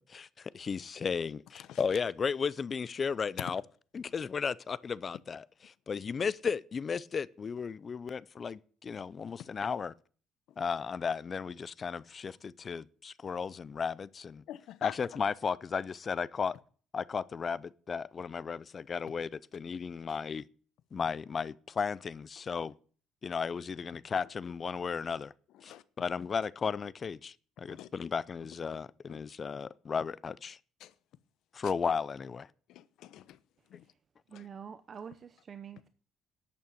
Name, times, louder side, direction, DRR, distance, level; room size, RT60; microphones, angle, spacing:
voice 1, 0.1-3.6 3.9-5.4 5.9-9.9 10.6-14.4 14.8-16.6 16.9-20.4 20.9-22.7 23.2-25.3 25.6-30.6 31.5-32.5 34.3-34.4, left 6 dB, 30° left, 0.5 m, -35 dB
voice 2, 14.5-15.0 20.1-20.2 25.5-25.8 27.6-27.9 29.1-29.2 30.8-30.9 31.6-31.7 32.7-33.4 33.7-33.9 34.3-34.4, left 12 dB, 70° left, 0.9 m, -44 dB
voice 3, 34.3-35.9, right 7 dB, 35° right, 0.7 m, -46 dB
11.5 x 8.5 x 7.8 m
cardioid pair, 140°, 0 cm